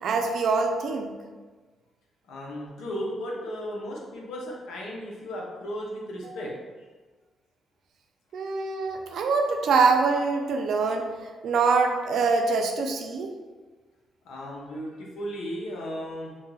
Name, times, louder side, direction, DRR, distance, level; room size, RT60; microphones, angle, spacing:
voice 1, 0.0-1.1 6.2-6.3 8.3-11.1 11.4-13.3, right 4 dB, 70° right, 4 dB, 0.3 m, -24 dB
voice 2, 2.3-6.5 14.2-16.3, equal, 90° left, -2 dB, 0.6 m, -35 dB
2.6 x 2.2 x 3.1 m, 1.3 s
cardioid pair, 110°, 0 cm